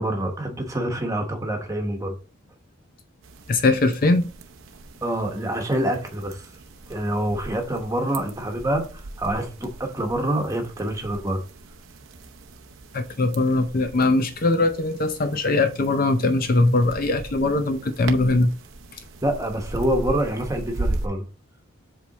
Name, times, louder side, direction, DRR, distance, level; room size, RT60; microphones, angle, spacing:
voice 1, 0.0-2.1 5.0-6.5 6.9-11.4 19.2-21.2, right 1 dB, 15° right, 1.1 m, -26 dB
sound 1, 3.2-21.1, right 2 dB, 70° right, 0.7 m, -38 dB
voice 2, 3.5-4.3 12.9-18.5, left 2 dB, 40° left, 0.5 m, -21 dB
7.6 x 3.4 x 4.0 m
head